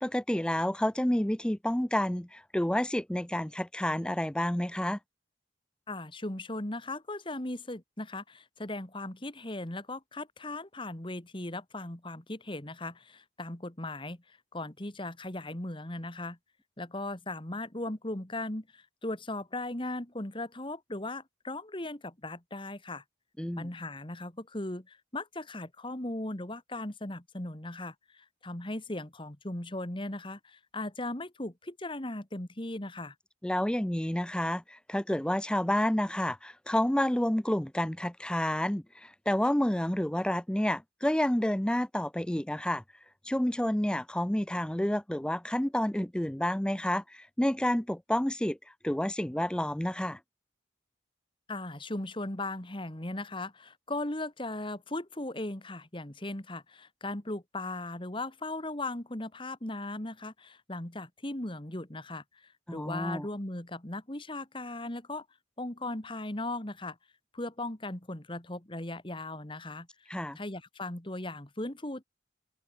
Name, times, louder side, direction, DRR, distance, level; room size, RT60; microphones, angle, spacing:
voice 1, 0.0-5.0 23.4-23.7 33.4-42.8 43.3-48.6 48.8-50.2 62.7-63.3 70.1-70.4, left 1 dB, 5° left, 0.5 m, -29 dB
voice 2, 5.9-14.2 14.5-16.4 16.8-23.0 23.6-33.1 51.5-62.2 62.7-65.3 65.6-67.0 67.3-69.9 70.4-72.0, left 2 dB, 25° left, 1.9 m, -38 dB
open air
head